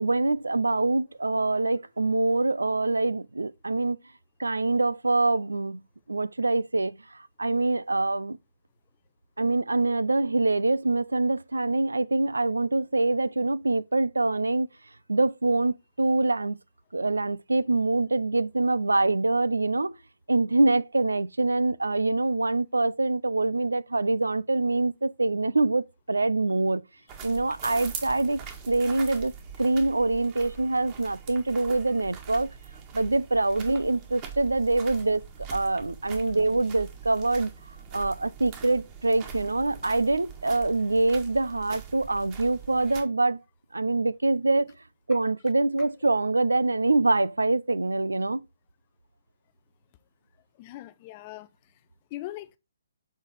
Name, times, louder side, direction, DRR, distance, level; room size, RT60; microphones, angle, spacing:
voice 1, 0.0-4.0 4.4-5.8 6.1-8.4 9.4-14.7 15.1-16.6 16.9-20.0 20.3-26.8 27.2-29.3 29.6-32.5 32.9-35.2 35.5-37.5 37.9-43.4 43.7-44.7 45.1-48.4, right 2 dB, 80° right, 0.4 m, -25 dB
sound 1, 27.1-43.0, right 7 dB, 30° right, 1.7 m, -43 dB
voice 2, 50.5-51.8 52.1-52.6, left 16 dB, 30° left, 0.6 m, -41 dB
7.2 x 3.9 x 4.5 m
figure-of-eight pair, 135°, 0 cm